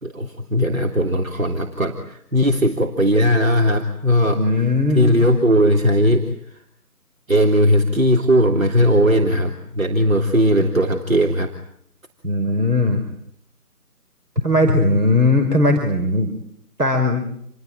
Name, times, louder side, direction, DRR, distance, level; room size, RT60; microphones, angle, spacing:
voice 1, 0.0-4.4 4.9-6.3 7.3-11.5 14.6-14.9, equal, 60° right, 4 dB, 3.6 m, -18 dB
voice 2, 4.4-5.1 12.2-13.0 14.4-16.3 16.8-17.3, left 2 dB, 80° right, 5 dB, 5.5 m, -18 dB
29.0 x 22.0 x 8.9 m, 0.70 s
figure-of-eight pair, 160°, 46 cm